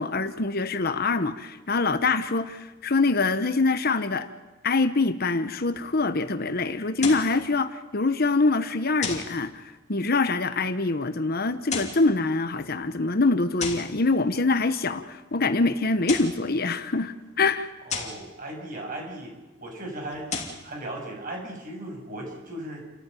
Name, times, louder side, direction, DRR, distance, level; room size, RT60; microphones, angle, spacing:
voice 1, 0.0-4.3 4.6-17.7, left 3 dB, 50° left, 1.2 m, -24 dB
sound 1, 7.0-7.4 9.0-9.4 11.5-12.1 13.6-14.0 15.9-16.4 17.9-18.2 20.1-20.6, left 5 dB, 35° left, 3.0 m, -32 dB
voice 2, 17.9-19.3 19.6-20.3 20.6-22.8, right 1 dB, 45° right, 7.5 m, -37 dB
29.5 x 14.0 x 9.2 m
head